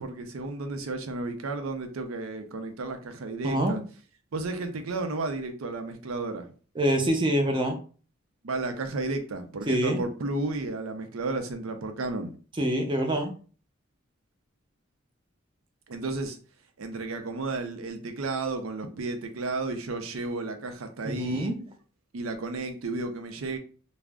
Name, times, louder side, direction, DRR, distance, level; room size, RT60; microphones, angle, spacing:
voice 1, 0.0-3.8 4.3-6.5 8.4-12.3 15.9-16.4 16.8-21.5 22.1-23.6, right 3 dB, 90° right, 0.5 m, -33 dB
voice 2, 3.4-3.8 6.8-7.8 9.7-10.0 12.6-13.3 21.0-21.6, right 1 dB, 25° right, 0.5 m, -25 dB
2.4 x 2.0 x 3.4 m
head